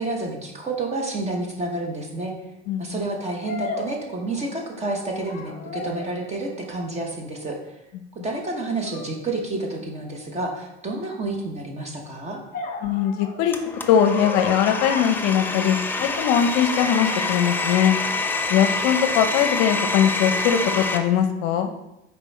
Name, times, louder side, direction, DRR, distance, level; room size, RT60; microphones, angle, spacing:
voice 1, 0.0-2.3 2.8-7.6 8.2-12.4, right 2 dB, 20° right, 1 dB, 1.2 m, -29 dB
sound 1, 1.1-1.2 3.4-4.7 5.1-6.2 8.8-9.1 12.5-16.0 16.7-17.3, left 3 dB, 25° left, 1.4 m, -35 dB
voice 2, 12.8-13.6 13.9-18.0 18.5-21.7, left 9 dB, 55° left, 7 dB, 0.7 m, -21 dB
Domestic sounds home sounds, 13.5-21.0, left 3 dB, 5° left, 0.3 m, -26 dB
5.5 x 4.6 x 4.1 m, 0.88 s
supercardioid pair, 115°, 32 cm